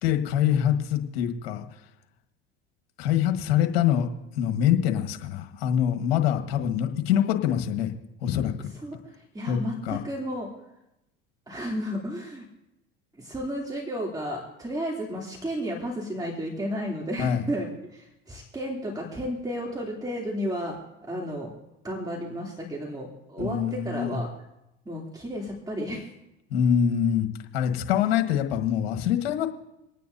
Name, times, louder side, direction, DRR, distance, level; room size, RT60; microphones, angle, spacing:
voice 1, 0.0-1.6 3.0-4.1 4.3-7.9 8.2-8.5 9.5-9.6 9.8-10.0 17.2-17.4 23.4-24.2 26.5-27.3 27.5-29.5, left 9 dB, 75° left, 5 dB, 1.6 m, -24 dB
voice 2, 9.3-10.5 11.5-12.5 13.2-20.8 21.1-21.5 21.8-24.3 24.8-26.1, equal, 15° right, -2 dB, 3.1 m, -32 dB
27.5 x 9.3 x 2.8 m, 0.91 s
hypercardioid pair, 80°, 30 cm